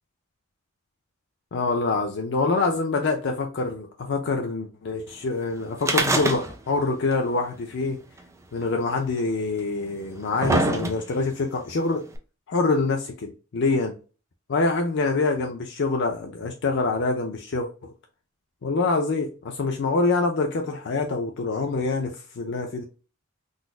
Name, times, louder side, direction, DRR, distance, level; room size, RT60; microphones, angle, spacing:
voice 1, 1.5-8.0 8.5-12.0 12.5-14.0 14.5-17.9 18.6-22.8, left 3 dB, 60° left, 0.5 m, -25 dB
sound 1, 5.8-6.8 7.1-7.2 8.2-8.3 9.2-9.3 9.9-11.3 12.1-12.2, right 2 dB, 15° right, 0.5 m, -24 dB
3.9 x 2.5 x 2.4 m
head